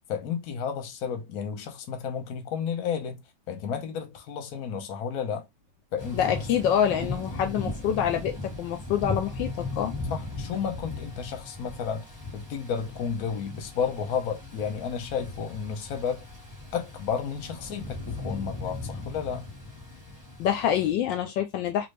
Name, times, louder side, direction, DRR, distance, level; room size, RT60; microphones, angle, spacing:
voice 1, 0.1-3.2 3.5-5.5 5.9-6.3 10.1-12.1 12.3-16.2 16.7-19.5, left 7 dB, 60° left, 1.1 m, -32 dB
Thunder / Rain, 6.0-20.9, left 2 dB, 10° left, 1.1 m, -38 dB
voice 2, 6.1-9.9 20.4-21.9, left 9 dB, 75° left, 1.2 m, -26 dB
3.0 x 2.6 x 3.2 m
omnidirectional pair, 2.1 m